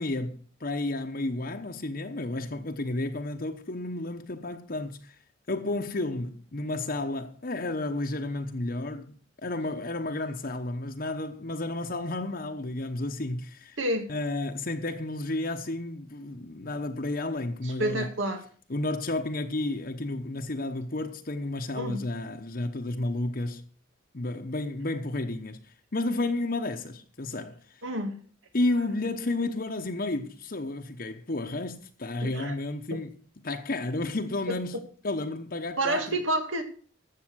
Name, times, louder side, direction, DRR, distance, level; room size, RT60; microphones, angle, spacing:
voice 1, 0.0-5.2 5.5-9.1 9.4-13.8 14.1-18.1 18.7-23.6 24.1-27.6 28.5-33.2 33.4-34.8 35.0-36.2, left 2 dB, 50° left, 1.0 m, -32 dB
voice 2, 13.8-14.1 17.6-18.4 21.8-22.0 27.8-28.1 32.2-32.6 32.9-33.0 34.5-34.6 35.8-36.6, right 1 dB, 80° right, 2.4 m, -29 dB
13.5 x 7.7 x 6.3 m
head